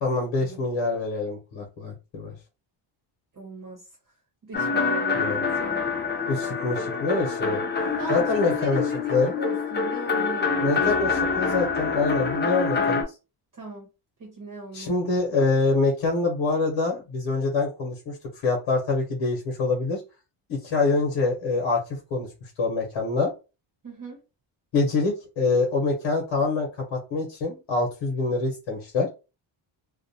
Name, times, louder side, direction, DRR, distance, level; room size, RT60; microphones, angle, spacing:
voice 1, 0.0-2.3 5.2-5.4 6.3-7.6 8.1-8.8 9.1-9.3 10.6-13.1 14.7-18.2 18.4-20.0 20.5-23.3 24.7-29.1, left 3 dB, 75° left, 1.0 m, -25 dB
voice 2, 3.3-3.9 4.4-5.8 8.0-10.8 13.5-13.9 14.2-15.0 23.8-24.2, right 2 dB, 40° right, 0.9 m, -38 dB
sound 1, 4.5-13.0, left 4 dB, 25° left, 0.5 m, -26 dB
2.4 x 2.2 x 2.7 m
wide cardioid pair, 150°, 48 cm